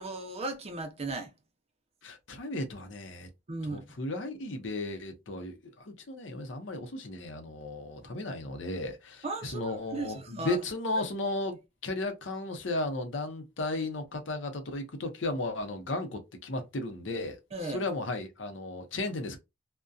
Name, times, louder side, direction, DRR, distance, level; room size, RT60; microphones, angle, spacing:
voice 1, 0.0-1.3 3.5-3.9 9.2-10.6 17.5-17.9, right 2 dB, 35° right, 0.6 m, -36 dB
voice 2, 2.0-3.3 3.7-19.4, left 2 dB, 70° left, 0.7 m, -35 dB
2.5 x 2.2 x 2.3 m
head